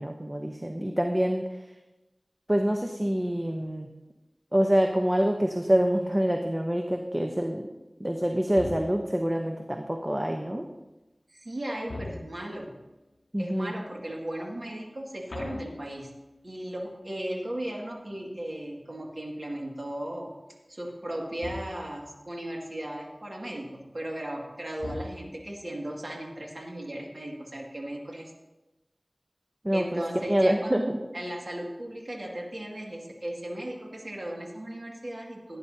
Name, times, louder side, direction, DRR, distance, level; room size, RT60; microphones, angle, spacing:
voice 1, 0.0-1.5 2.5-3.9 4.5-7.7 8.0-10.7 13.3-13.7 29.6-30.0 30.3-31.0, equal, 25° right, 3 dB, 0.9 m, -26 dB
sound 1, 8.6-9.3 11.9-12.7 15.3-16.5 21.4-22.1 24.8-25.6, left 2 dB, 75° left, 0.6 m, -41 dB
voice 2, 11.3-12.7 13.4-16.1 16.4-20.3 20.7-28.3 29.7-30.8 31.1-35.6, right 1 dB, 70° right, -1 dB, 2.2 m, -36 dB
17.0 x 9.7 x 2.8 m, 1.1 s
wide cardioid pair, 40°, 0 cm